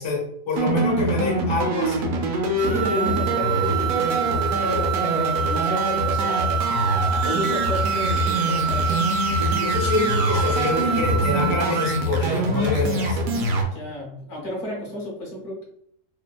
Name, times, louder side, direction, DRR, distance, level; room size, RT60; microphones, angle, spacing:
voice 1, 0.0-2.1 9.4-13.2, left 3 dB, 45° left, -1 dB, 0.4 m, -26 dB
sound 1, 0.6-13.6, right 1 dB, 75° right, 1.0 m, -24 dB
voice 2, 2.6-6.5 7.2-9.1 13.7-15.6, left 1 dB, 60° left, -2 dB, 1.1 m, -32 dB
sound 2, 2.6-12.2, right 7 dB, 55° right, 0.8 m, -26 dB
sound 3, 3.7-10.8, left 4 dB, 90° left, 1.1 m, -43 dB
3.3 x 2.1 x 2.2 m, 0.70 s
omnidirectional pair, 1.5 m